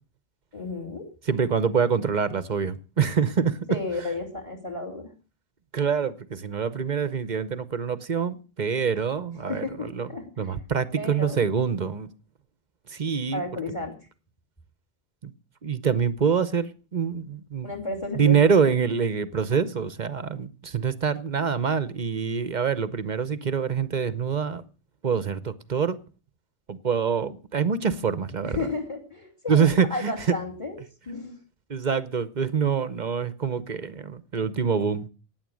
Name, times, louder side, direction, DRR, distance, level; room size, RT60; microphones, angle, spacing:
voice 1, 0.5-1.1 3.7-5.1 9.5-10.6 10.9-11.4 13.3-13.9 17.6-18.5 28.4-30.8 31.1-31.4, left 3 dB, 25° left, 4 dB, 2.9 m, -33 dB
voice 2, 1.3-3.6 5.7-10.1 10.4-12.1 12.9-13.4 15.2-15.3 15.6-17.7 18.1-24.6 25.0-26.0 26.7-28.7 29.5-30.1 31.7-35.1, right 6 dB, 45° right, 15 dB, 0.9 m, -25 dB
16.5 x 9.7 x 6.3 m, 0.36 s
omnidirectional pair, 1.2 m